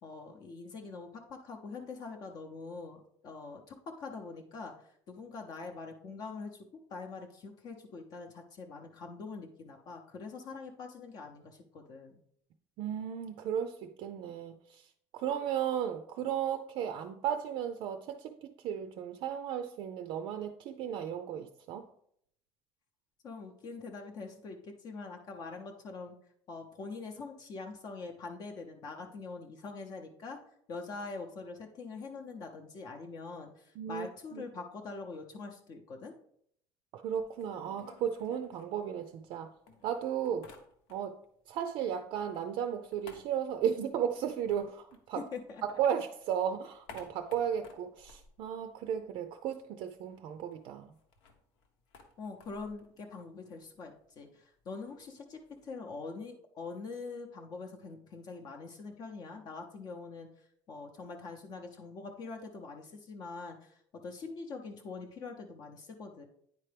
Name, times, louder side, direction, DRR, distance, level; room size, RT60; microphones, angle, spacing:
voice 1, 0.0-6.6 6.9-12.2 23.2-26.2 26.5-30.4 30.7-36.1 45.2-45.6 52.2-66.3, left 4 dB, 40° left, 0.7 m, -44 dB
voice 2, 12.8-14.9 15.1-21.8 33.8-34.4 36.9-39.5 39.8-40.5 40.9-41.2 41.5-45.2 45.7-50.9, right 9 dB, 55° right, 0.4 m, -35 dB
sound 1, 37.2-39.3 39.7-41.3 41.6-45.7 46.0-49.3 49.6-49.7 50.0-55.8, left 4 dB, 85° left, 1.1 m, -57 dB
9.4 x 4.5 x 3.3 m
cardioid pair, 155°, 10 cm